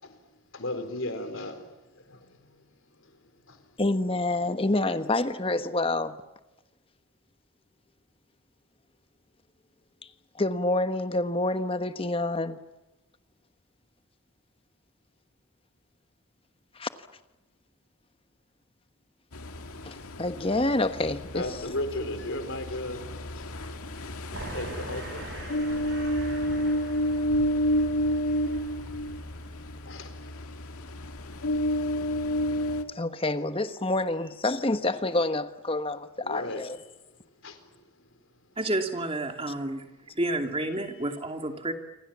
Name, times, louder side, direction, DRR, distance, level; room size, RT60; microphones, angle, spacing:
voice 1, 0.0-3.8 4.4-4.6 21.3-23.8 24.2-25.3 29.8-30.6 34.2-34.3 36.2-36.6 37.0-38.2, left 1 dB, 65° left, 4.1 m, -37 dB
voice 2, 3.8-6.2 10.3-12.6 16.7-16.9 19.8-21.4 32.9-36.8, left 2 dB, 25° left, 1.2 m, -27 dB
Ocean, 19.3-32.8, equal, 90° left, 2.0 m, -30 dB
sound 1, 24.3-29.7, right 1 dB, 50° right, 6.6 m, -42 dB
voice 3, 38.6-39.8 40.2-41.7, right 1 dB, 25° right, 2.6 m, -30 dB
28.5 x 25.0 x 7.4 m
head